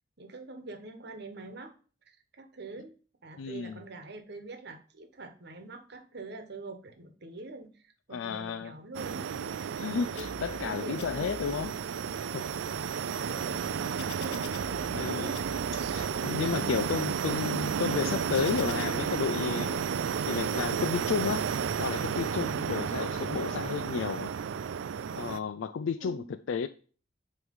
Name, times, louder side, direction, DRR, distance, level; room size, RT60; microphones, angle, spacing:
voice 1, 0.2-1.7 2.0-2.9 3.2-9.8 10.1-11.5 12.7-14.4 14.7-15.5 15.7-16.0 16.4-16.8 26.0-26.3, right 2 dB, 60° right, 1.2 m, -45 dB
voice 2, 3.4-3.8 8.1-8.7 9.8-11.7 12.3-12.5 14.9-15.3 15.9-20.0 20.3-24.3 25.2-26.7, left 6 dB, 85° left, 0.4 m, -32 dB
sound 1, 8.9-25.4, right 7 dB, 85° right, 0.4 m, -32 dB
sound 2, 10.2-10.7 11.0-11.7 12.3-15.1 15.3-16.1 16.6-18.8, left 4 dB, 65° left, 0.8 m, -48 dB
9.5 x 3.2 x 5.3 m
head